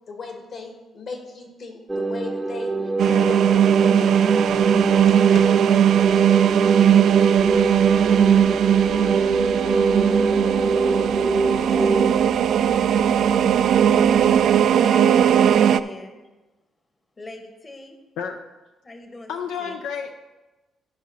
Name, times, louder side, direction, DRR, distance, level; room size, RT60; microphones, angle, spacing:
voice 1, 0.1-4.1 4.5-6.0, left 4 dB, 60° left, 3 dB, 1.9 m, -37 dB
sound 1, 1.9-12.1, right 3 dB, 10° right, 0.6 m, -24 dB
sound 2, 3.0-15.8, right 9 dB, 70° right, 0.3 m, -18 dB
sound 3, 7.4-14.6, right 6 dB, 55° right, 0.8 m, -42 dB
voice 2, 11.5-12.9 14.8-16.2 17.2-18.0 18.8-19.3 19.6-19.8, left 1 dB, 30° left, 5 dB, 1.1 m, -39 dB
voice 3, 19.3-20.1, left 7 dB, 85° left, 5 dB, 0.5 m, -30 dB
13.5 x 5.0 x 4.1 m, 1.1 s
cardioid pair, 90°, 0 cm